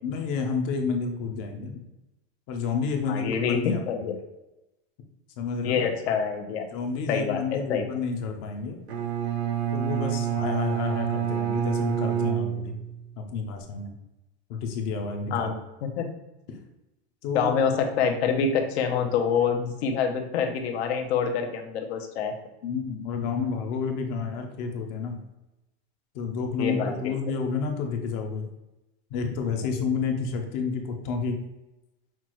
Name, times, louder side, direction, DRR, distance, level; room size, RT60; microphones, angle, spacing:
voice 1, 0.0-1.8 2.5-3.8 5.4-5.8 6.7-8.8 9.7-12.7 13.2-13.9 14.5-15.5 16.5-16.6 17.2-17.5 22.6-25.2 26.1-28.5 29.1-31.4, left 5 dB, 35° left, 4 dB, 0.5 m, -30 dB
voice 2, 3.1-4.2 5.6-6.7 7.1-7.4 7.7-7.8 15.3-15.5 15.8-16.1 17.3-22.3 26.6-26.9, left 6 dB, 85° left, 4 dB, 0.8 m, -26 dB
Bowed string instrument, 8.9-13.1, right 10 dB, 90° right, 0.8 m, -27 dB
5.8 x 2.3 x 2.9 m, 0.97 s
supercardioid pair, 175°, 31 cm